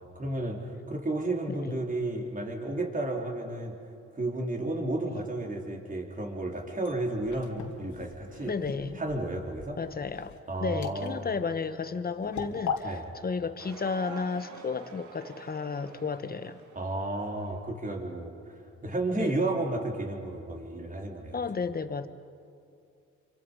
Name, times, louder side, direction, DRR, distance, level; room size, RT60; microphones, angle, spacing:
voice 1, 0.1-3.7 4.1-8.5 9.0-9.8 10.5-11.3 12.8-13.0 16.8-21.4, right 2 dB, 25° right, 1 dB, 4.1 m, -32 dB
sound 1, 6.5-12.8, left 7 dB, 70° left, 2.9 m, -39 dB
voice 2, 8.4-9.0 9.8-16.6 19.1-19.5 21.3-22.1, left 5 dB, 30° left, 11 dB, 1.4 m, -33 dB
sound 2, 13.6-17.5, right 5 dB, 75° right, 2.2 m, -48 dB
29.5 x 25.5 x 5.5 m, 2.5 s
cardioid pair, 90°, 30 cm